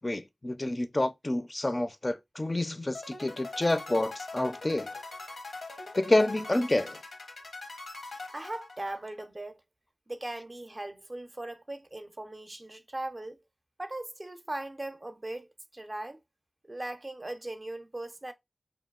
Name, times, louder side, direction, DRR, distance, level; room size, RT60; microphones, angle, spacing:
voice 1, 0.0-4.9 6.0-7.0, left 1 dB, 35° left, 0.4 m, -28 dB
sound 1, 2.9-9.2, left 3 dB, 85° left, 0.7 m, -42 dB
voice 2, 8.3-9.6 10.1-13.4 13.8-16.2 16.6-18.3, right 1 dB, 35° right, 0.4 m, -39 dB
2.8 x 2.2 x 2.3 m
cardioid pair, 50°, 0 cm